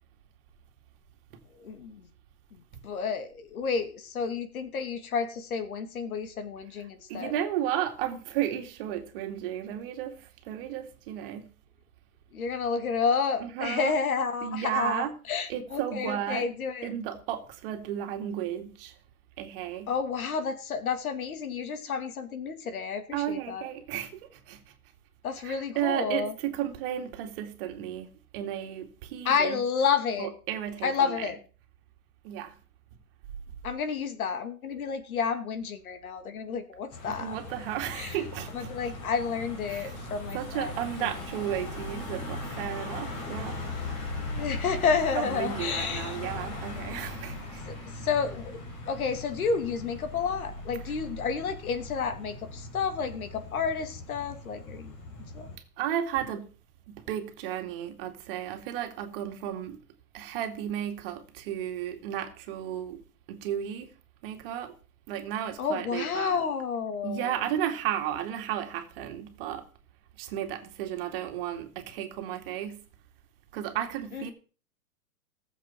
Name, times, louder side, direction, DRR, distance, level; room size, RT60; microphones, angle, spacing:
voice 1, 1.6-2.0 2.8-7.3 12.3-16.9 19.9-23.6 25.2-26.3 29.2-30.3 30.8-31.4 33.6-37.3 37.9-38.2 38.5-40.7 41.0-41.1 44.3-46.2 47.6-54.9 55.3-55.5 65.6-67.4 74.1-74.3, left 6 dB, 70° left, 2.5 m, -30 dB
voice 2, 7.1-11.5 13.4-13.9 14.4-15.1 15.5-16.5 16.8-18.9 19.4-19.9 23.1-24.7 25.4-29.6 30.2-31.2 32.2-32.6 37.1-38.7 39.7-39.9 40.3-43.6 45.2-47.6 55.8-56.5 56.9-59.8 60.1-63.0 63.3-63.9 64.2-64.7 65.1-66.4 67.0-69.6 70.2-72.8 73.5-74.3, right 11 dB, 40° right, 2.4 m, -33 dB
Car passing by / Engine, 36.9-55.6, left 2 dB, 30° left, 4.8 m, -39 dB
19.0 x 7.6 x 4.5 m
hypercardioid pair, 150°, 44 cm